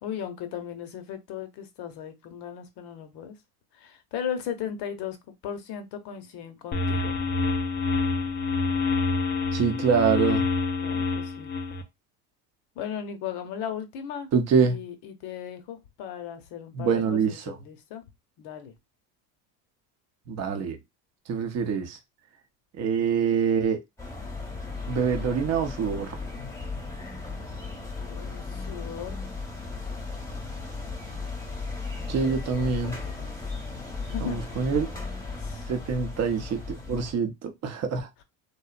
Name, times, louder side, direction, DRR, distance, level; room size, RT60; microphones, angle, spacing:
voice 1, 0.0-3.4 3.7-5.2 5.4-7.2 10.8-11.5 12.8-18.0 18.4-18.7 28.1-29.2 32.1-33.3 34.1-34.7 35.4-35.7, left 8 dB, 55° left, 0.8 m, -37 dB
sound 1, 6.7-11.8, left 3 dB, 25° left, 0.3 m, -27 dB
voice 2, 9.5-10.5 14.3-14.8 16.7-17.6 20.3-20.8 21.3-22.0 22.8-23.8 24.9-26.2 32.1-33.0 34.2-34.9 35.7-38.1, right 6 dB, 35° right, 0.6 m, -25 dB
sound 2, 24.0-37.1, left 3 dB, 5° left, 0.8 m, -36 dB
2.7 x 2.0 x 2.4 m
supercardioid pair, 95°, 47 cm